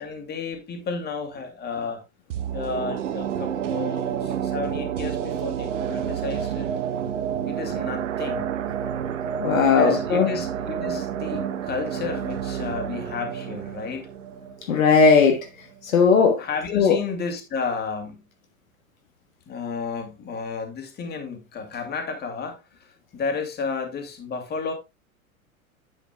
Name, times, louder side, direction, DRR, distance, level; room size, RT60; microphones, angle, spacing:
voice 1, 0.0-2.0 2.5-6.7 7.5-8.6 9.6-14.1 16.4-18.2 19.5-24.7, left 5 dB, 25° left, 2.4 m, -32 dB
sound 1, 2.3-15.4 15.7-15.8, right 9 dB, 60° right, 1.2 m, -29 dB
voice 2, 9.4-10.3 14.7-15.5 15.8-16.5 16.7-17.0, left 5 dB, 65° left, 1.6 m, -17 dB
10.0 x 8.4 x 2.2 m
figure-of-eight pair, 90°, 42 cm